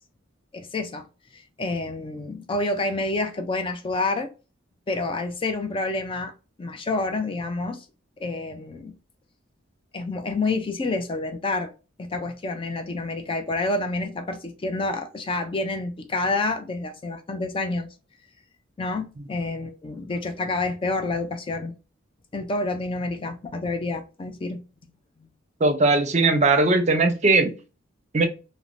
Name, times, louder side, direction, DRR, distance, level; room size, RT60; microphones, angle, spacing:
voice 1, 0.5-1.1 1.3-4.3 4.9-6.3 6.6-7.9 8.2-8.9 9.9-11.7 12.0-17.9 18.8-21.7 22.3-24.6, left 2 dB, 25° left, 0.4 m, -28 dB
voice 2, 25.6-27.6 28.1-28.2, right 3 dB, 35° right, 0.5 m, -19 dB
2.5 x 2.1 x 3.1 m
head